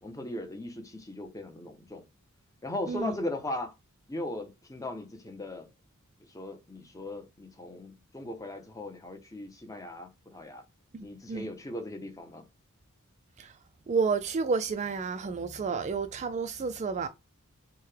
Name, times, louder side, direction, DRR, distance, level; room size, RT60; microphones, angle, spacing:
voice 1, 0.0-2.1 2.6-3.7 4.1-5.7 6.2-10.6 11.0-12.5, left 1 dB, 15° left, 0.6 m, -38 dB
voice 2, 10.9-11.5 13.4-13.5 13.9-17.1, right 5 dB, 30° right, 0.3 m, -30 dB
4.6 x 2.1 x 3.2 m
head